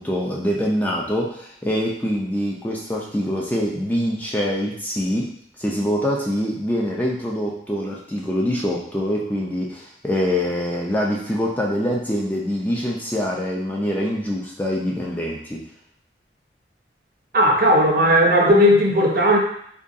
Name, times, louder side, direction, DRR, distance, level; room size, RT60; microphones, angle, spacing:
voice 1, 0.0-5.3 5.6-15.7, equal, 10° left, -3 dB, 0.3 m, -24 dB
voice 2, 17.3-19.4, equal, 55° right, 0 dB, 0.6 m, -16 dB
3.7 x 2.3 x 2.5 m, 0.67 s
head